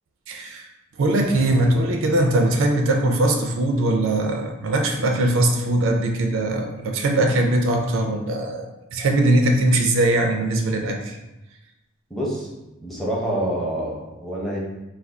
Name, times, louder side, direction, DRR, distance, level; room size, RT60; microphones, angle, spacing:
voice 1, 0.3-0.7 1.0-8.6 8.9-11.2, right 1 dB, 75° right, 3 dB, 0.4 m, -21 dB
voice 2, 12.1-12.5 12.8-14.6, right 1 dB, ahead, -5 dB, 0.6 m, -27 dB
2.4 x 2.3 x 3.4 m, 0.96 s
head